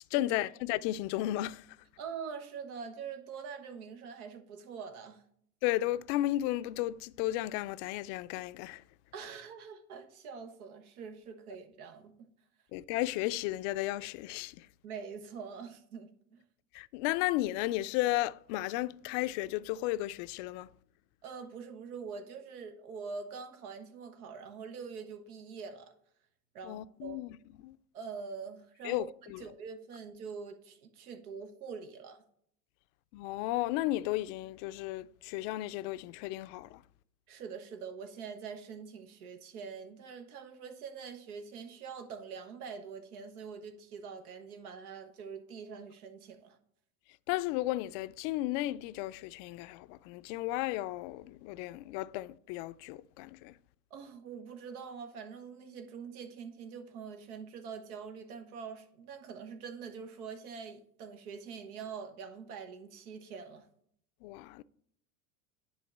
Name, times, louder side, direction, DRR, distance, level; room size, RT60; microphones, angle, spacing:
voice 1, 0.1-1.7 5.6-8.8 12.7-14.7 16.7-20.7 26.6-27.4 27.6-27.8 28.8-29.4 33.1-36.8 47.3-53.5 64.2-64.6, left 16 dB, 55° left, 0.5 m, -34 dB
voice 2, 2.0-5.2 9.1-12.3 14.8-16.4 21.2-25.9 26.5-27.2 27.9-29.1 29.4-32.2 37.3-46.6 53.9-63.7, right 6 dB, 80° right, 1.4 m, -44 dB
10.5 x 3.8 x 7.2 m
hypercardioid pair, 100°, 43 cm